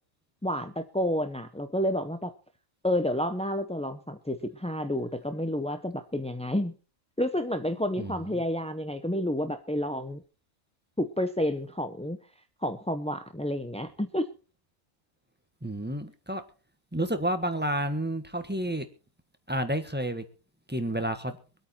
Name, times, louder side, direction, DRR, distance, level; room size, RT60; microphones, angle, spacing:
voice 1, 0.4-2.3 2.8-6.7 7.2-10.2 11.0-12.2 12.6-14.3, left 1 dB, 10° left, 7 dB, 0.3 m, -30 dB
voice 2, 8.0-8.4 15.6-16.4 16.9-18.8 19.5-20.2 20.7-21.4, right 1 dB, 10° right, 8 dB, 1.2 m, -30 dB
23.5 x 8.8 x 4.3 m, 0.35 s
omnidirectional pair, 1.4 m